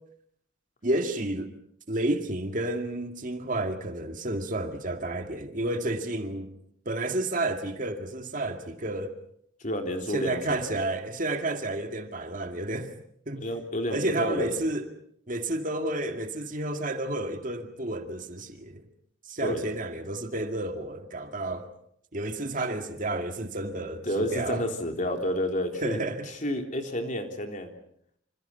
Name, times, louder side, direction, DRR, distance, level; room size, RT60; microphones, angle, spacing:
voice 1, 0.8-1.5 1.9-6.6 6.9-9.2 10.1-13.0 13.3-13.5 13.9-14.9 15.3-18.9 19.3-21.7 22.1-24.7 25.8-26.3, right 2 dB, 40° right, 2.1 m, -31 dB
voice 2, 9.6-10.6 13.4-14.5 19.4-19.6 24.1-26.0 26.4-27.7, left 1 dB, 40° left, 3.6 m, -30 dB
27.0 x 27.0 x 5.7 m
head